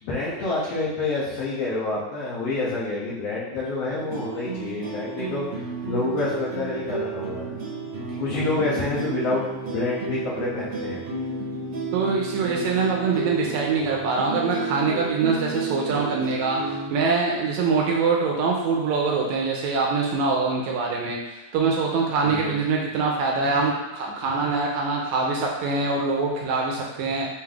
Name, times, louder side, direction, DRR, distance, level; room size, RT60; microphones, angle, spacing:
voice 1, 0.0-5.5 5.9-7.6 8.2-11.0 22.2-22.6, left 3 dB, 70° left, -7 dB, 1.7 m, -28 dB
sound 1, 3.9-16.9, right 3 dB, 60° right, 1.8 m, -32 dB
voice 2, 11.9-27.3, right 4 dB, 80° right, -1 dB, 1.8 m, -24 dB
5.6 x 3.3 x 2.3 m, 1.0 s
omnidirectional pair, 3.5 m